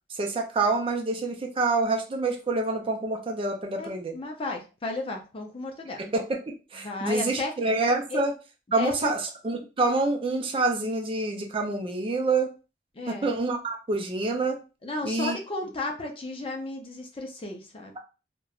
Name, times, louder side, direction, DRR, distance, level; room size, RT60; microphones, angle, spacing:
voice 1, 0.2-4.1 6.0-8.3 8.7-12.5 13.1-14.6 15.0-15.4, right 3 dB, 30° right, 3 dB, 0.5 m, -27 dB
voice 2, 3.8-6.0 6.8-7.5 8.1-8.2 8.8-9.1 12.9-13.3 14.8-18.0, left 2 dB, 30° left, 2 dB, 0.5 m, -34 dB
3.0 x 2.2 x 2.3 m, 0.32 s
head